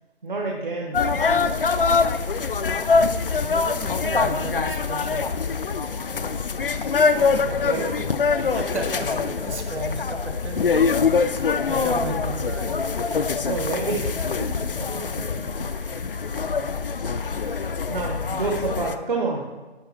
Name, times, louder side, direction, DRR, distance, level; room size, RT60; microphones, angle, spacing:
voice 1, 0.2-1.0 7.4-7.9 11.9-12.3 13.4-14.7 15.7-16.1 17.9-19.5, right 3 dB, 45° right, -1 dB, 1.3 m, -29 dB
sound 1, 0.9-19.0, left 5 dB, 55° left, 0.5 m, -24 dB
voice 2, 3.3-5.4 7.3-7.5 7.8-8.1 8.4-10.9 11.4-12.7 14.9-15.1 16.8-16.9 17.4-17.6, right 3 dB, 85° right, 5 dB, 1.1 m, -35 dB
11.5 x 5.3 x 4.3 m, 1.2 s
figure-of-eight pair, 165°, 33 cm